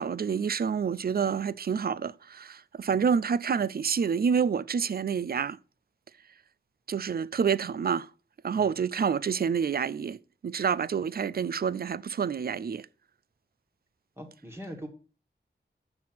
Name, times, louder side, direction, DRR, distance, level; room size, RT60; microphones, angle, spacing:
voice 1, 0.0-5.6 6.9-8.1 8.4-12.9, right 6 dB, 55° right, 0.4 m, -28 dB
voice 2, 14.2-14.9, equal, 15° right, 1.6 m, -41 dB
7.6 x 5.8 x 5.7 m
wide cardioid pair, 90°, 19 cm